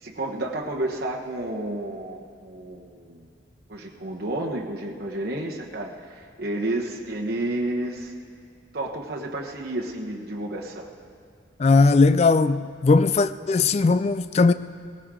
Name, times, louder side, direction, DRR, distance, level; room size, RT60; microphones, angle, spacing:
voice 1, 0.0-3.3 3.7-8.1 8.7-10.9, right 1 dB, 50° right, 1.2 m, -31 dB
voice 2, 11.6-14.5, left 3 dB, 35° left, 0.3 m, -18 dB
18.0 x 15.5 x 3.8 m
head